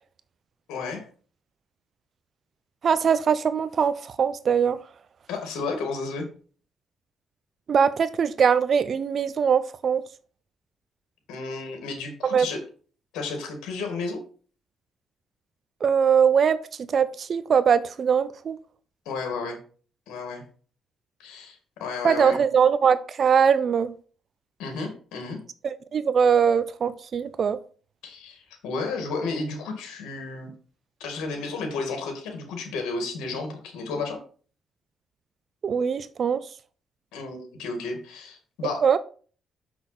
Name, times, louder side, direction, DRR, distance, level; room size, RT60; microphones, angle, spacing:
voice 1, 0.7-1.0 5.3-6.3 11.3-12.6 13.1-14.2 19.1-19.6 20.1-20.4 21.2-22.4 24.6-25.4 28.0-30.5 31.0-34.2 37.1-38.9, left 4 dB, 90° left, 2.1 m, -32 dB
voice 2, 2.8-4.8 7.7-10.0 12.2-12.5 15.8-16.6 16.9-18.6 22.0-23.9 25.6-27.6 35.6-36.4 38.8-39.0, right 7 dB, 50° right, 0.5 m, -21 dB
6.4 x 6.0 x 4.2 m
cardioid pair, 90°, 0 cm